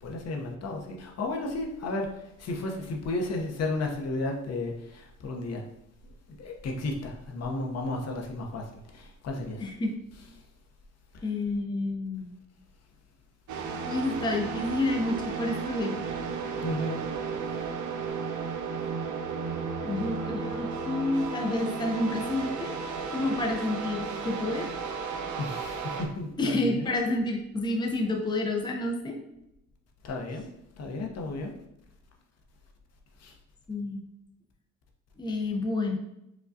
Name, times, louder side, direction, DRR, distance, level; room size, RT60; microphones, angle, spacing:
voice 1, 0.0-5.6 6.4-9.7 11.1-11.3 16.6-17.0 25.4-26.9 30.0-30.5 30.8-31.6 33.2-33.3, left 2 dB, 55° left, 1 dB, 0.7 m, -33 dB
voice 2, 9.6-9.9 11.2-12.3 13.8-16.0 19.8-22.7 23.1-24.7 26.4-29.2 33.7-34.0 35.2-36.0, left 2 dB, 15° left, 1 dB, 0.6 m, -29 dB
sound 1, 13.5-26.1, right 5 dB, 75° right, 0.6 m, -34 dB
4.8 x 2.2 x 2.6 m, 0.81 s
cardioid pair, 90°, 30 cm